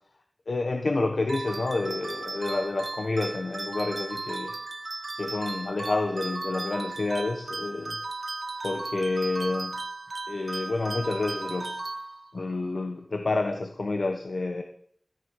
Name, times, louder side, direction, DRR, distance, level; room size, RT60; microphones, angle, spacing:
voice 1, 0.5-4.5 5.2-8.0 8.6-9.8 10.3-11.8 12.3-14.6, left 3 dB, 75° left, 4 dB, 1.3 m, -29 dB
sound 1, 1.3-12.5, right 2 dB, 65° right, 1.1 m, -36 dB
14.0 x 10.5 x 7.3 m, 0.63 s
wide cardioid pair, 70°, 0 cm